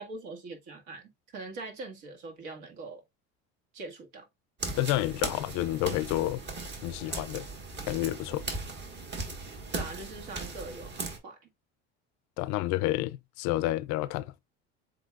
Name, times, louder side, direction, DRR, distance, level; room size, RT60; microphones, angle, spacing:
voice 1, 0.0-3.0 3.7-4.3 9.7-11.4, right 3 dB, 70° right, 1.8 m, -42 dB
sound 1, 4.6-11.2, right 3 dB, 35° right, 1.5 m, -38 dB
voice 2, 4.7-6.4 6.8-7.5 7.9-8.5 12.4-14.3, left 16 dB, 65° left, 0.4 m, -29 dB
7.7 x 2.8 x 2.4 m
supercardioid pair, 100°, 30 cm